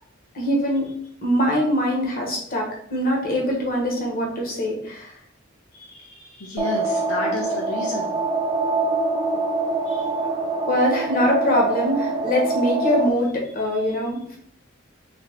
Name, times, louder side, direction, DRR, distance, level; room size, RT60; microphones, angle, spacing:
voice 1, 0.3-0.9 1.2-5.1 10.7-14.4, equal, 45° left, -1 dB, 1.0 m, -23 dB
voice 2, 5.7-8.2 9.9-10.1, left 2 dB, 75° left, -2 dB, 0.6 m, -32 dB
sound 1, 6.6-13.1, right 3 dB, 20° right, 0.3 m, -24 dB
3.3 x 2.8 x 2.9 m, 0.63 s
head